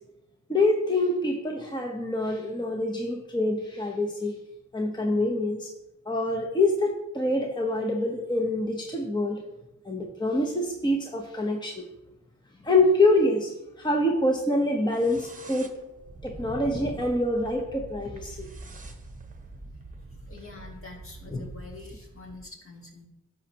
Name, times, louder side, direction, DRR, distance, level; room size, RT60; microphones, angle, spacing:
voice 1, 0.5-4.4 4.7-5.7 6.1-9.4 9.8-11.8 12.6-13.5 13.8-15.8 16.2-18.5 21.3-21.5, left 2 dB, 15° left, 1 dB, 1.0 m, -25 dB
sound 1, 14.9-22.5, right 2 dB, 25° right, 1.0 m, -43 dB
voice 2, 20.3-23.1, left 3 dB, 40° left, 0 dB, 2.1 m, -45 dB
11.5 x 6.8 x 2.9 m, 0.91 s
cardioid pair, 85°, 32 cm